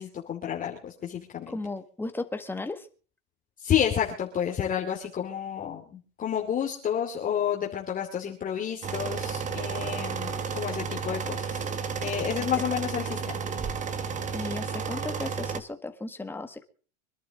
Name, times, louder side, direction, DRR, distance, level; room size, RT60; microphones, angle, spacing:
voice 1, 0.0-1.5 3.6-5.8 6.2-11.6 12.0-13.2, left 9 dB, 25° left, -2 dB, 2.6 m, -30 dB
voice 2, 1.5-2.9 14.3-16.6, left 2 dB, 5° left, 7 dB, 1.6 m, -35 dB
sound 1, 8.8-15.6, right 6 dB, 20° right, 1.3 m, -32 dB
25.0 x 11.5 x 3.7 m, 0.39 s
supercardioid pair, 140°, 35 cm